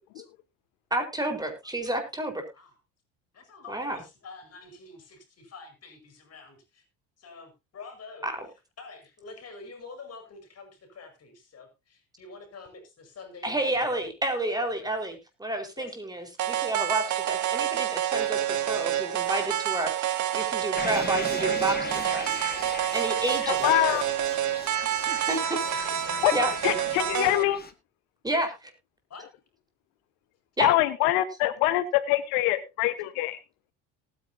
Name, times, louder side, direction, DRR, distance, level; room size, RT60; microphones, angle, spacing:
voice 1, 0.9-2.4 3.7-4.0 8.2-8.3 13.4-22.4 22.9-23.6 25.1-25.9 26.3-26.5 28.2-28.7 30.6-30.7, right 1 dB, 10° right, 5 dB, 4.6 m, -30 dB
voice 2, 3.3-6.8 7.2-8.3 8.8-14.0 15.8-16.0 23.6-24.4 25.6-26.4 29.1-29.3, left 4 dB, 40° left, 8 dB, 5.8 m, -46 dB
sound 1, 16.4-27.4, right 11 dB, 50° right, 1.9 m, -28 dB
sound 2, 20.7-27.7, left 5 dB, 25° left, 1.7 m, -39 dB
voice 3, 23.4-24.0 26.2-26.3 26.6-27.6 30.6-33.4, left 15 dB, 75° left, 13 dB, 1.3 m, -24 dB
18.5 x 9.5 x 2.8 m, 0.25 s
supercardioid pair, 85°, 37 cm